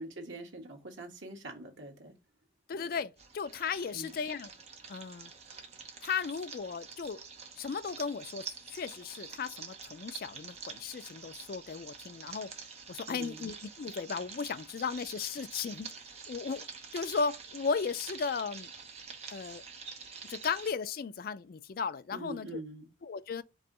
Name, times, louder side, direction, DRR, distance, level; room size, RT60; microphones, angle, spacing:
voice 1, 0.0-2.1 3.9-4.2 13.1-13.5 22.1-22.9, right 1 dB, 85° right, 1.4 m, -44 dB
voice 2, 2.7-4.5 4.9-5.3 6.0-7.2 7.6-12.5 12.9-15.9 16.3-16.6 16.9-18.7 19.3-19.6 20.3-22.6 23.0-23.4, left 5 dB, 50° left, 0.3 m, -36 dB
sound 1, 3.2-20.7, right 5 dB, 35° right, 0.8 m, -47 dB
4.7 x 2.8 x 3.7 m
head